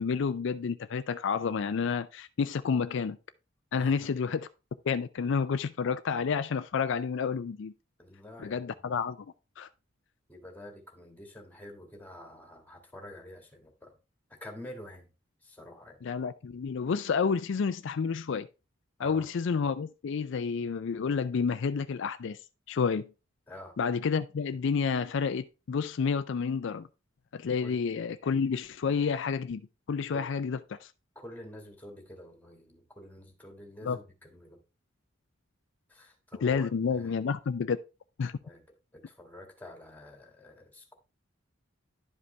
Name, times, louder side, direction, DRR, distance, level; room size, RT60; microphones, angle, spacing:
voice 1, 0.0-3.2 3.7-4.5 4.9-7.7 8.4-9.3 9.6-9.7 16.0-18.5 19.0-22.4 22.7-23.1 23.8-26.9 27.3-29.6 29.9-30.9 33.8-34.0 36.4-37.8 38.2-38.3, left 5 dB, 65° left, 0.4 m, -30 dB
voice 2, 3.7-4.1 8.0-9.0 10.3-13.9 14.3-15.1 15.4-16.0 19.0-19.3 23.5-23.8 27.6-27.8 30.1-30.3 31.2-34.6 35.9-37.1 38.4-38.6 38.9-40.9, left 1 dB, 10° left, 1.8 m, -48 dB
11.0 x 5.1 x 3.3 m
head